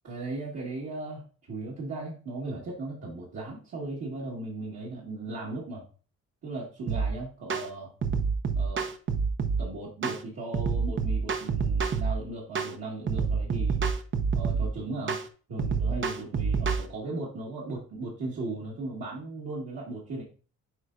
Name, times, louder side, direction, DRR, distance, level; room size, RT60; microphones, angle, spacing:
voice 1, 0.0-5.8 6.4-7.9 8.6-8.8 9.6-13.8 14.3-15.2 15.5-20.2, right 2 dB, 60° right, -6 dB, 2.1 m, -37 dB
sound 1, 6.9-7.1 7.5-7.7 8.0-9.6 10.0-10.2 10.5-12.1 12.5-12.7 13.1-14.7 15.1-15.2 15.6-16.8, right 5 dB, 40° right, 0.8 m, -27 dB
8.8 x 4.5 x 2.6 m, 0.38 s
cardioid pair, 90°, 30 cm